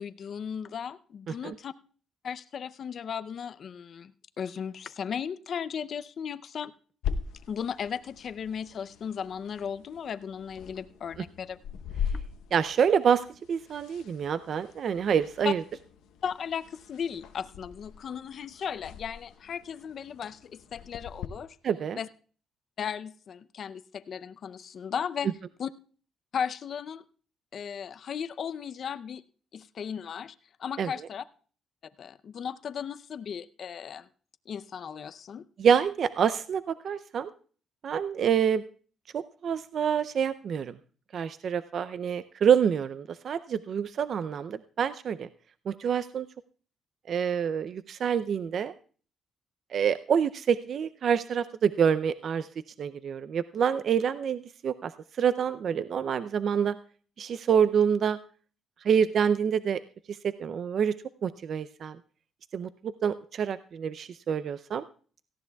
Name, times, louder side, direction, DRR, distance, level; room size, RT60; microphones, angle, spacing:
voice 1, 0.0-1.7 2.2-6.7 7.5-11.6 12.1-12.2 15.4-15.5 16.2-21.6 22.0-22.1 22.8-25.7 26.3-27.0 27.5-29.2 29.5-30.3 30.6-31.2 32.0-34.1 34.5-35.5, left 7 dB, 55° left, 12 dB, 0.5 m, -36 dB
sound 1, 7.0-21.3, left 7 dB, 90° left, 0.8 m, -40 dB
voice 2, 12.5-15.6 21.6-22.0 30.8-30.9 35.6-37.3 37.8-38.6 39.1-40.7 41.1-45.3 45.7-46.3 47.1-48.7 49.7-52.5 52.8-54.9 55.2-56.8 57.2-58.2 58.8-59.8 60.1-60.9 61.2-62.0 62.5-64.8, right 7 dB, 60° right, 13 dB, 0.5 m, -27 dB
17.5 x 15.0 x 2.3 m, 0.42 s
cardioid pair, 90°, 0 cm